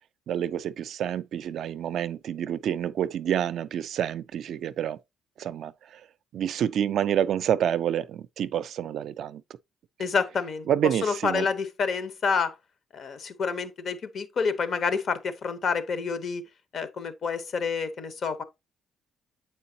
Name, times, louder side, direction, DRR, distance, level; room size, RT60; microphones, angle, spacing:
voice 1, 0.3-5.0 5.4-6.0 6.3-9.4 10.7-11.5, right 10 dB, 70° right, 0.3 m, -28 dB
voice 2, 10.0-10.7 11.0-12.5 12.9-16.5 16.7-18.4, left 5 dB, 55° left, 0.8 m, -28 dB
7.5 x 4.6 x 2.7 m
cardioid pair, 90°, 0 cm